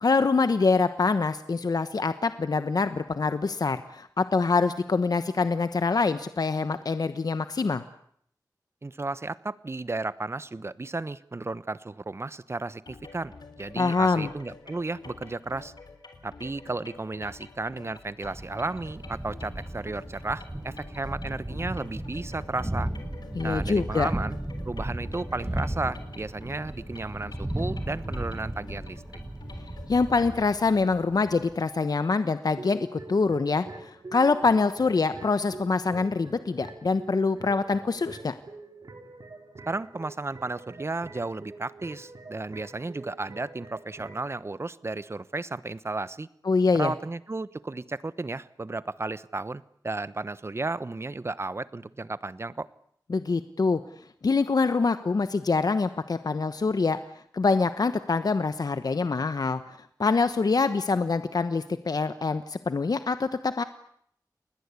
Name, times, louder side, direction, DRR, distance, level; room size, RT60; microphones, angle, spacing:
voice 1, 0.0-7.8 13.8-14.3 23.3-24.1 29.9-38.3 46.4-46.9 53.1-53.8 54.2-57.0 57.3-59.6 60.0-63.6, left 4 dB, 65° left, 11 dB, 1.1 m, -25 dB
voice 2, 8.8-15.7 16.2-22.9 23.4-24.4 24.6-29.0 39.7-46.3 46.8-52.7, right 3 dB, 40° right, 16 dB, 1.0 m, -34 dB
sound 1, 12.9-30.3, left 4 dB, 90° left, 4.0 m, -48 dB
Thunder, 18.2-31.6, right 1 dB, 20° right, 7.4 m, -35 dB
sound 2, 32.6-44.3, right 2 dB, 60° right, 3.9 m, -45 dB
29.5 x 20.5 x 8.4 m, 0.68 s
wide cardioid pair, 90°, 7 cm